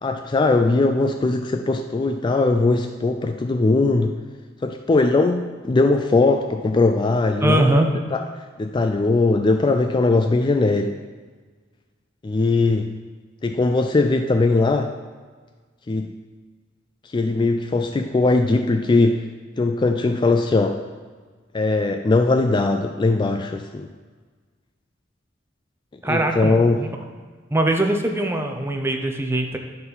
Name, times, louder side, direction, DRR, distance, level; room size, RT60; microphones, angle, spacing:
voice 1, 0.0-4.1 4.6-7.7 8.1-8.2 8.6-10.9 12.2-12.9 13.4-14.9 15.9-16.1 17.1-19.2 19.6-20.8 21.5-23.9 26.0-26.8, left 3 dB, 25° left, 6 dB, 0.3 m, -20 dB
voice 2, 7.4-7.9 26.0-27.0 27.5-29.6, right 1 dB, 15° right, 3 dB, 0.6 m, -21 dB
10.5 x 4.0 x 5.5 m, 1.5 s
head